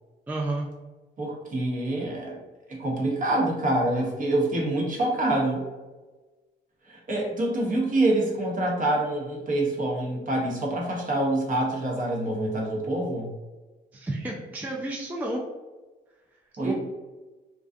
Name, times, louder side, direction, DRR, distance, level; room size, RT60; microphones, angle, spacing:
voice 1, 0.3-0.7 13.9-15.4 16.6-16.7, right 2 dB, 10° right, -2 dB, 0.3 m, -31 dB
voice 2, 1.2-2.4 2.7-5.6 6.9-13.3 16.6-16.7, right 1 dB, 40° right, -1 dB, 0.8 m, -26 dB
2.5 x 2.2 x 2.4 m, 1.2 s
cardioid pair, 90°, 20 cm